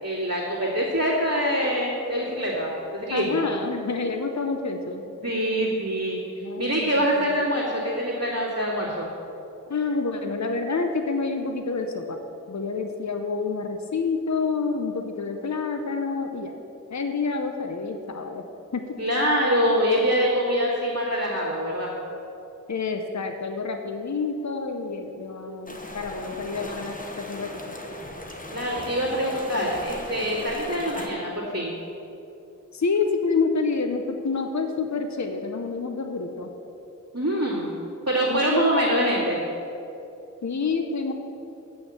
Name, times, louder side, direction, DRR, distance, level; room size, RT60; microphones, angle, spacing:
voice 1, 0.0-3.4 5.2-6.2 6.6-9.1 19.0-21.9 28.5-31.7 37.1-37.7 38.1-39.4, equal, 55° right, -9 dB, 2.3 m, -24 dB
voice 2, 3.1-5.0 6.4-6.9 7.2-7.3 9.7-12.2 12.5-16.5 16.9-18.5 18.7-18.9 22.7-27.5 32.7-36.5 38.3-38.7 40.4-41.1, left 4 dB, 60° left, 5 dB, 0.7 m, -28 dB
sound 1, 25.7-31.1, left 1 dB, 25° left, 1.1 m, -38 dB
8.4 x 6.2 x 7.6 m, 2.8 s
wide cardioid pair, 40°, 32 cm